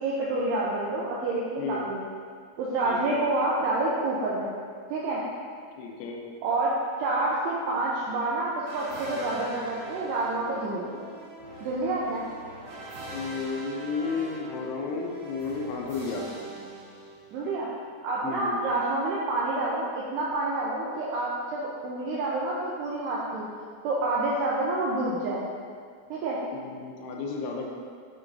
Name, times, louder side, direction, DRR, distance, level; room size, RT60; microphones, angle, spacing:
voice 1, 0.0-2.0 2.6-4.5 4.9-5.2 6.4-6.7 7.0-10.9 11.6-12.2 17.3-17.7 18.0-23.5 23.8-25.4 26.1-26.4, right 2 dB, 85° right, -6 dB, 2.4 m, -28 dB
voice 2, 2.8-3.2 5.8-6.2 13.1-16.2 18.2-18.6 26.5-27.7, left 4 dB, 80° left, 0 dB, 3.1 m, -33 dB
sound 1, 8.6-17.5, right 1 dB, 65° right, 3.0 m, -42 dB
9.7 x 7.5 x 2.7 m, 2.1 s
omnidirectional pair, 5.7 m